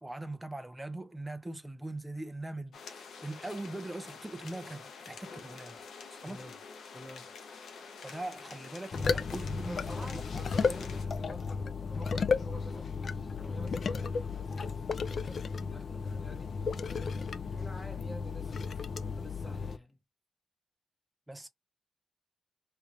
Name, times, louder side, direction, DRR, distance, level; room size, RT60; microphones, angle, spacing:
voice 1, 0.0-5.8 6.1-6.4 8.0-10.2 21.3-21.5, right 2 dB, 10° right, 0.5 m, -41 dB
sound 1, 2.7-11.1, left 5 dB, 80° left, 0.7 m, -48 dB
voice 2, 6.2-6.5 6.9-7.3 9.6-17.0 17.4-20.0, equal, 20° left, 1.1 m, -49 dB
sound 2, 8.9-19.8, left 5 dB, 55° left, 0.3 m, -34 dB
3.2 x 2.5 x 3.1 m
cardioid pair, 100°, 0 cm